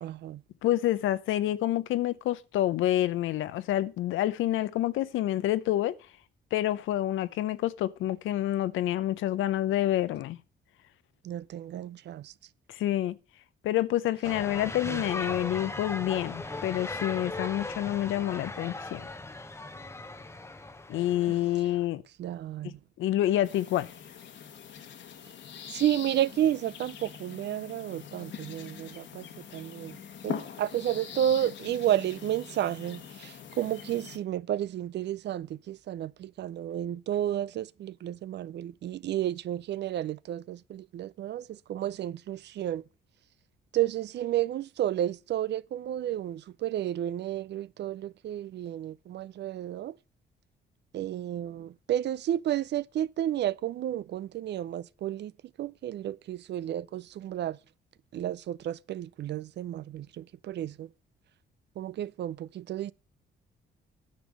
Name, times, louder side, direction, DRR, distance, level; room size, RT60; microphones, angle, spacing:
voice 1, 0.0-0.4 11.2-12.3 14.8-15.0 21.3-21.4 22.2-22.8 25.7-29.3 29.5-30.0 30.2-42.8 43.7-50.0 50.9-55.3 55.6-57.6 58.1-60.9 61.8-62.9, right 11 dB, 60° right, 0.5 m, -32 dB
voice 2, 0.6-6.0 6.5-10.4 12.7-13.2 13.6-19.1 20.9-22.0 22.6-23.9, left 13 dB, 85° left, 0.7 m, -28 dB
sound 1, 14.2-21.9, left 2 dB, 15° left, 0.8 m, -38 dB
sound 2, 23.4-34.2, left 8 dB, 65° left, 1.3 m, -43 dB
9.8 x 5.2 x 7.3 m
cardioid pair, 90°, 20 cm